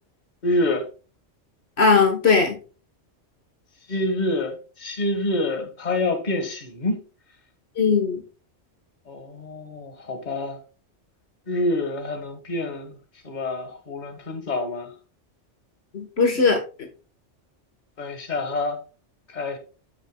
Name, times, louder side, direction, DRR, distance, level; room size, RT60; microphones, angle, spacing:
voice 1, 0.4-0.9 3.9-7.0 9.1-10.6 11.5-12.9 13.2-14.9 16.3-16.4 18.0-18.8 19.3-19.6, left 2 dB, 40° left, 1.5 m, -27 dB
voice 2, 1.8-2.6 7.8-8.2 15.9-16.6, left 4 dB, 60° left, 1.5 m, -19 dB
13.5 x 6.5 x 2.2 m
omnidirectional pair, 1.2 m